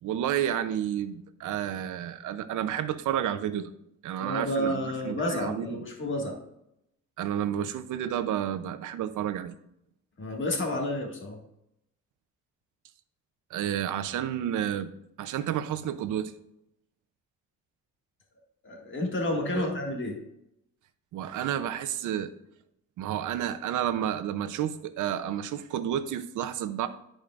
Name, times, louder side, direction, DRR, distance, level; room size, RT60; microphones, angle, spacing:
voice 1, 0.0-3.7 4.0-5.8 7.2-9.5 13.5-14.9 15.2-16.3 19.5-19.7 21.1-22.3 23.0-26.9, right 10 dB, 80° right, 12 dB, 0.7 m, -30 dB
voice 2, 4.2-6.4 10.2-11.4 18.6-20.2, left 1 dB, 40° left, 1 dB, 2.0 m, -30 dB
12.0 x 5.0 x 2.5 m, 0.78 s
cardioid pair, 90°, 30 cm